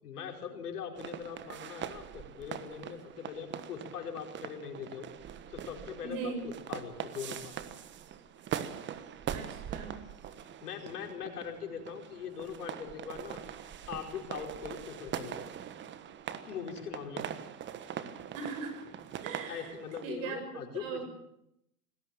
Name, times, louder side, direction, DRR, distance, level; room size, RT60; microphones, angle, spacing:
voice 1, 0.0-5.1 5.5-7.6 10.6-13.4 13.9-15.4 16.4-17.3 19.5-21.0, left 7 dB, 80° left, 3 dB, 5.2 m, -41 dB
sound 1, 1.0-20.0, right 9 dB, 25° right, 1.4 m, -42 dB
voice 2, 6.0-6.4 9.3-10.0 18.3-18.8 19.2-19.7 20.0-21.0, right 5 dB, 55° right, 6 dB, 6.7 m, -39 dB
19.5 x 17.0 x 8.9 m, 0.79 s
hypercardioid pair, 125°, 45 cm